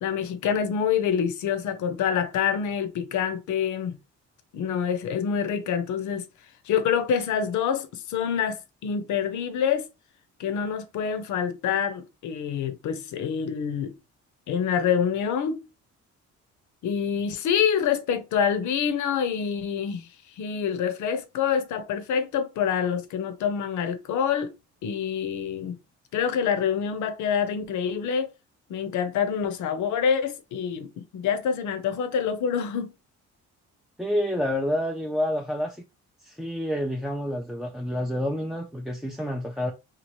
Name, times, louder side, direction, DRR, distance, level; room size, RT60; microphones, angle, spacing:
voice 1, 0.0-4.0 4.5-6.3 6.7-9.9 10.4-13.9 14.5-15.7 16.8-20.1 20.4-24.5 24.8-25.8 26.1-28.3 28.7-32.9, left 7 dB, 75° left, 0.6 m, -26 dB
voice 2, 34.0-35.8 36.2-39.7, equal, ahead, 0.4 m, -28 dB
2.8 x 2.4 x 3.0 m
cardioid pair, 90°, 30 cm